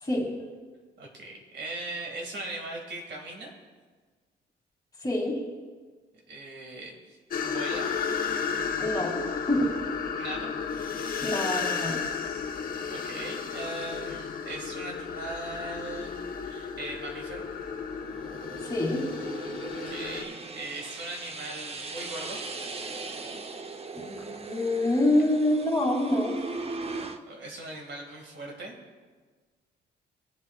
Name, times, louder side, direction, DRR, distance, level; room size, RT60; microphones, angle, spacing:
voice 1, 1.0-3.5 6.3-7.2 7.4-7.9 10.1-10.5 12.8-17.5 19.7-22.4 27.3-28.8, right 2 dB, 60° right, 1 dB, 2.2 m, -39 dB
voice 2, 5.0-5.3 8.8-9.7 11.2-12.0 18.6-19.1 23.9-26.4, left 1 dB, 20° left, -2 dB, 2.8 m, -26 dB
sound 1, 7.3-20.2, left 6 dB, 50° left, 1.0 m, -33 dB
sound 2, 17.1-27.2, right 3 dB, 30° right, 0.7 m, -39 dB
19.5 x 7.4 x 2.4 m, 1.4 s
cardioid pair, 90°, 20 cm